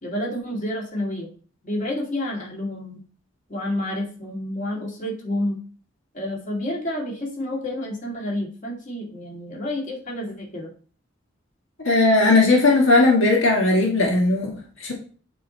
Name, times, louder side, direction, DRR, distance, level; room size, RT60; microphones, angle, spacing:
voice 1, 0.0-1.3 1.6-3.0 3.5-5.6 6.1-10.7, left 1 dB, 40° left, -2 dB, 2.2 m, -29 dB
voice 2, 11.8-14.9, left 2 dB, 80° left, 0 dB, 1.5 m, -18 dB
8.4 x 3.9 x 4.4 m, 0.40 s
head